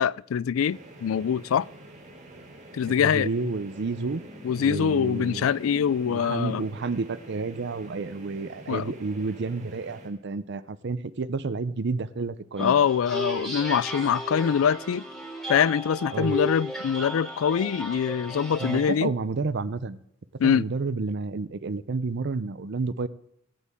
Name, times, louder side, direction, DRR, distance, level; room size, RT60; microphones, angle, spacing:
voice 1, 0.0-1.7 2.7-3.3 4.4-6.6 8.7-8.9 12.6-15.0 15.5-19.1 20.4-20.7, left 7 dB, 85° left, 0.4 m, -24 dB
sound 1, 0.7-10.1, right 1 dB, 40° right, 3.5 m, -46 dB
voice 2, 3.0-4.3 4.6-5.5 6.1-12.7 16.1-16.4 18.6-20.0 20.4-23.1, right 4 dB, 60° right, 0.6 m, -30 dB
sound 2, 12.6-18.9, equal, 5° left, 3.2 m, -35 dB
23.5 x 8.4 x 3.6 m
head